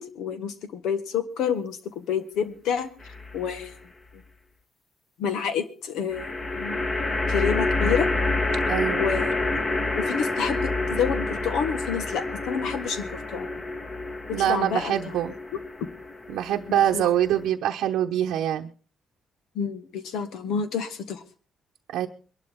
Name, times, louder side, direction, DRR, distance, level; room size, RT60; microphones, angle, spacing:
voice 1, 0.0-2.9 3.3-3.7 5.2-6.9 7.3-8.1 8.9-9.3 9.9-13.5 14.3-15.2 15.5-15.6 16.7-17.1 19.5-21.2, left 7 dB, 85° left, 10 dB, 1.5 m, -29 dB
sound 1, 3.0-3.6 6.1-17.5, left 2 dB, 30° left, 1.6 m, -28 dB
voice 2, 8.7-9.1 14.3-15.3 16.3-18.7 21.9-22.1, right 11 dB, 85° right, 2 dB, 0.9 m, -24 dB
22.0 x 12.0 x 3.6 m, 0.38 s
cardioid pair, 90°, 0 cm